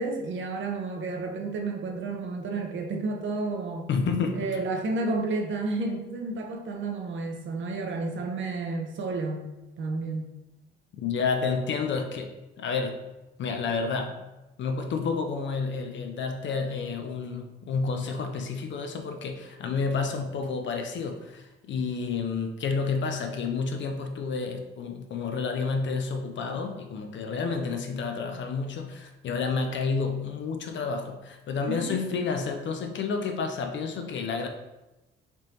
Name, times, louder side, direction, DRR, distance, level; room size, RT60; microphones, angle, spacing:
voice 1, 0.0-3.9 4.3-9.4 9.8-10.3 31.7-31.9, right 3 dB, 40° right, 2 dB, 0.7 m, -31 dB
voice 2, 3.9-4.4 11.0-13.0 13.4-14.2 14.6-34.5, left 4 dB, 40° left, 5 dB, 0.5 m, -30 dB
4.2 x 3.0 x 2.8 m, 1.0 s
figure-of-eight pair, 40°, 29 cm